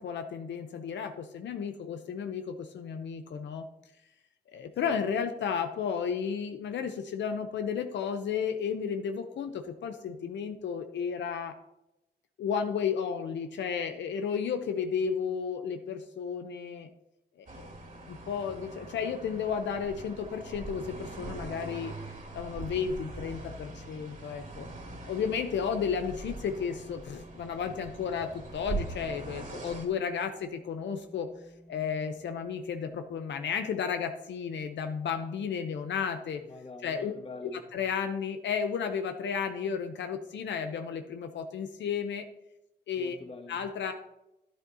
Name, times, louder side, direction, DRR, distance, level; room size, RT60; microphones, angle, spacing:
voice 1, 0.0-3.7 4.5-11.5 12.4-16.9 17.4-17.7 18.1-21.9 22.3-24.7 25.1-31.3 31.7-36.4 36.8-37.1 37.5-42.2 42.9-43.2 43.5-43.9, left 6 dB, 85° left, 7 dB, 0.7 m, -33 dB
sound 1, 17.5-33.0, right 1 dB, 5° left, 1.6 m, -56 dB
sound 2, 17.5-29.9, right 3 dB, 45° right, 2.6 m, -42 dB
voice 2, 36.4-37.6 43.0-43.7, left 3 dB, 30° left, 4 dB, 1.6 m, -45 dB
11.0 x 10.0 x 2.8 m, 0.90 s
cardioid pair, 75°, 18 cm